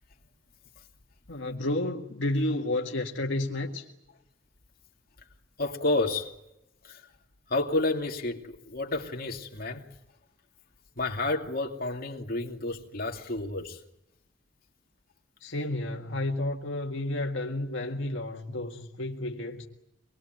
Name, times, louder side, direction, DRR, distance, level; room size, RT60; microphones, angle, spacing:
voice 1, 1.3-3.9 15.4-19.7, left 1 dB, 70° left, 1.9 m, -31 dB
voice 2, 5.6-6.4 6.8-7.0 7.5-9.8 11.0-13.8, left 2 dB, 50° left, 2.6 m, -30 dB
25.0 x 21.0 x 9.1 m
head